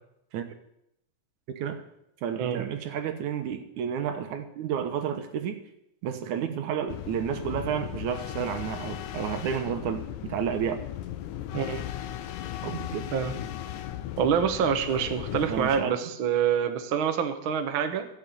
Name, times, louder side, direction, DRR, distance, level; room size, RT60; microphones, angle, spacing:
voice 1, 2.2-5.6 6.0-10.8 12.6-13.1 15.5-15.9, right 8 dB, 75° right, 8 dB, 2.5 m, -31 dB
sound 1, 6.9-15.8, left 12 dB, 80° left, 2.1 m, -37 dB
voice 2, 11.5-11.8 13.1-13.3 14.2-18.1, right 7 dB, 55° right, 7 dB, 1.6 m, -26 dB
14.0 x 7.6 x 8.5 m, 0.79 s
omnidirectional pair, 3.5 m